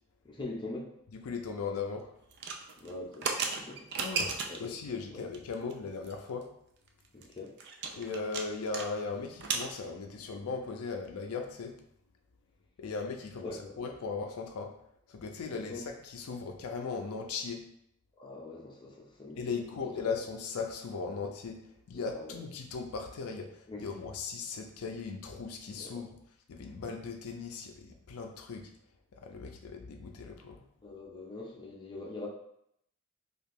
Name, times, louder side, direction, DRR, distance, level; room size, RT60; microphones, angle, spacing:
voice 1, 0.2-0.9 2.8-3.8 4.5-4.6 5.1-5.3 7.1-7.5 13.4-13.7 15.5-15.8 18.2-19.4 20.0-20.1 21.9-22.5 23.7-23.8 25.8-26.0 30.8-32.3, left 2 dB, 20° left, -3 dB, 0.5 m, -43 dB
voice 2, 1.1-2.1 4.0-6.5 8.0-11.7 12.8-13.5 13.8-14.7 15.1-17.6 19.4-21.6 21.9-26.2 26.5-28.7 29.1-30.6, left 4 dB, 80° left, 4 dB, 0.4 m, -38 dB
sound 1, 2.3-4.7 5.3-5.7 6.0-6.1 6.4-6.5 6.9-8.9 9.1-9.7, right 5 dB, 50° right, 0.4 m, -35 dB
2.8 x 2.4 x 3.5 m, 0.73 s
head